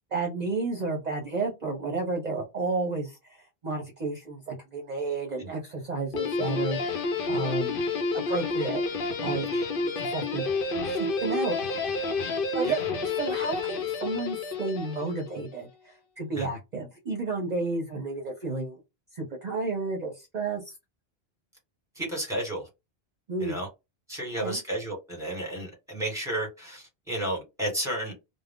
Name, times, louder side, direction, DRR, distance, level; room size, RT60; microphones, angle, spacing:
voice 1, 0.1-7.8 8.1-8.8 9.2-9.5 9.8-10.4 10.8-12.1 12.5-18.8 19.1-20.7 23.3-23.6 24.4-24.6, right 3 dB, 45° right, 0.7 m, -32 dB
Guitar, 6.1-15.5, left 3 dB, 60° left, 0.7 m, -30 dB
voice 2, 22.0-22.6 23.4-23.7 24.1-28.1, right 1 dB, 5° right, 1.2 m, -32 dB
2.4 x 2.0 x 3.5 m
omnidirectional pair, 1.1 m